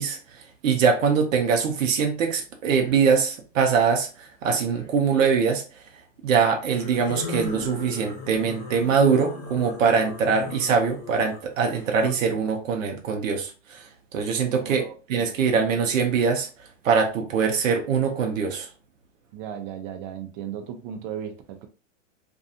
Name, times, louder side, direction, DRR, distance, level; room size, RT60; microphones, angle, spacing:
voice 1, 0.0-5.6 6.2-14.8 15.1-16.5 16.8-18.7, right 6 dB, 80° right, 0.7 m, -23 dB
sound 1, 2.8-3.1 4.7-5.2 6.7-12.1, left 4 dB, 35° left, 1.0 m, -37 dB
voice 2, 14.6-15.3 19.3-21.7, right 9 dB, 40° right, 0.5 m, -36 dB
2.5 x 2.3 x 2.6 m
hypercardioid pair, 135°, 39 cm